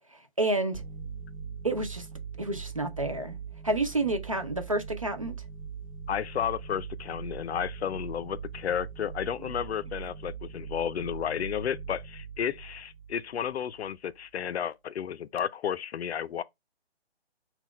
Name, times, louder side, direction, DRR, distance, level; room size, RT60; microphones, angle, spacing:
voice 1, 0.4-0.8 1.6-2.1 2.4-3.4 3.6-5.4 9.4-9.5, right 2 dB, 35° right, 0.4 m, -29 dB
sound 1, 0.7-13.9, right 6 dB, 65° right, 1.6 m, -41 dB
voice 2, 6.1-16.4, left 9 dB, 75° left, 0.5 m, -32 dB
4.0 x 2.3 x 4.0 m
hypercardioid pair, 170°, 32 cm